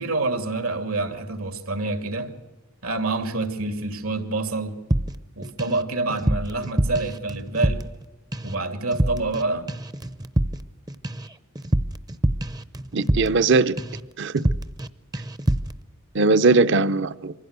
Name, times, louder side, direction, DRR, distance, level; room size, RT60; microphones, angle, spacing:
voice 1, 0.0-2.3 2.8-4.8 5.4-7.8 8.4-9.7, right 2 dB, 85° right, 2.4 m, -27 dB
sound 1, 4.9-5.8 6.1-8.0 8.3-8.6 8.9-9.4 9.7-13.5 13.8-14.1 14.4-14.9 15.1-15.8, right 1 dB, 20° right, 0.6 m, -26 dB
voice 2, 12.9-13.8 14.2-14.3 16.1-17.3, right 3 dB, 55° right, 0.7 m, -19 dB
24.0 x 15.5 x 8.1 m
head